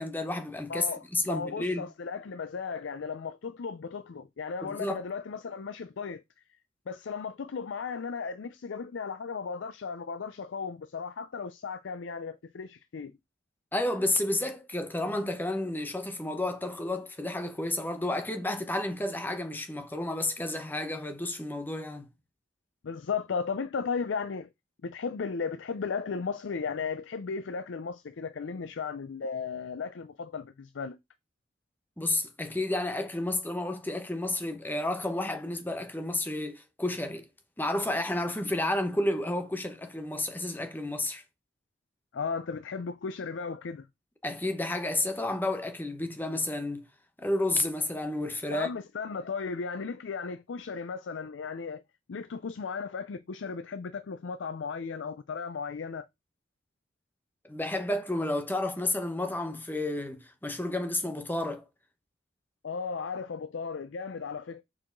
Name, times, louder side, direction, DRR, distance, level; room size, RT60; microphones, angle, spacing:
voice 1, 0.0-0.9 1.1-1.9 4.6-5.0 13.7-22.1 32.0-37.3 37.6-41.2 44.2-46.8 47.2-48.7 57.4-61.7, left 1 dB, 10° left, 0.9 m, -31 dB
voice 2, 0.7-6.2 6.9-13.1 22.8-24.5 24.8-31.0 42.1-43.9 48.5-51.8 52.1-56.1 62.6-64.6, left 5 dB, 80° left, 0.5 m, -35 dB
6.1 x 4.7 x 3.8 m
head